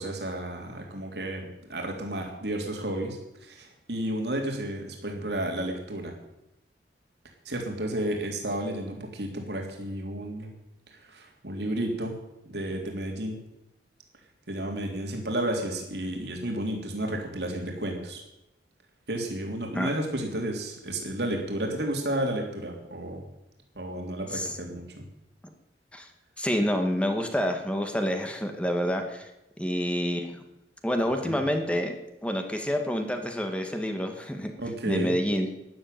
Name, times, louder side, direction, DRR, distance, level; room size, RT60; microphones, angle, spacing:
voice 1, 0.0-6.1 7.4-10.5 10.9-12.1 12.4-13.4 14.5-18.2 19.1-23.2 23.7-25.0 31.2-31.4 34.6-35.1, right 1 dB, 70° right, 1 dB, 3.4 m, -32 dB
voice 2, 26.4-29.3 29.6-30.4 30.8-32.0 32.2-34.5 34.9-35.5, equal, 5° left, 5 dB, 1.7 m, -28 dB
12.5 x 11.0 x 9.2 m, 0.90 s
head